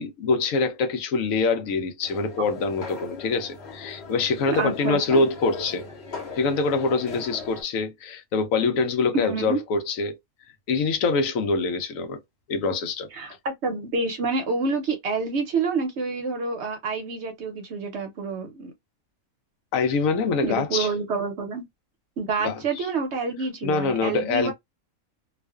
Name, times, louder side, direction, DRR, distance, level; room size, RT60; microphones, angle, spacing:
voice 1, 0.0-5.8 6.3-10.2 10.7-12.2 12.5-13.1 19.7-20.9 22.4-22.9 23.6-24.5, left 4 dB, 75° left, 1.0 m, -25 dB
sound 1, 2.0-7.6, left 4 dB, 55° left, 1.1 m, -39 dB
voice 2, 4.5-5.3 9.1-9.6 13.1-18.7 20.4-21.7 22.2-24.5, right 4 dB, 60° right, 0.8 m, -28 dB
2.4 x 2.4 x 2.2 m
omnidirectional pair, 1.5 m